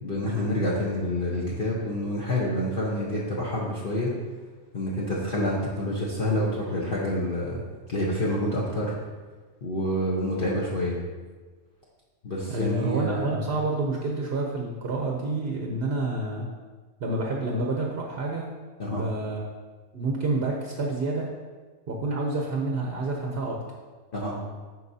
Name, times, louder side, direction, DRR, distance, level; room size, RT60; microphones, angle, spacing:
voice 1, 0.0-4.2 4.7-7.6 7.9-8.9 9.6-11.0 12.2-13.5 18.8-19.0 24.1-24.4, left 1 dB, 40° left, -6 dB, 1.1 m, -28 dB
voice 2, 12.5-16.5 17.0-18.4 18.9-19.4 19.9-21.3 21.9-23.6, right 2 dB, 50° right, 0 dB, 0.9 m, -28 dB
11.5 x 4.6 x 2.8 m, 1.4 s
omnidirectional pair, 1.5 m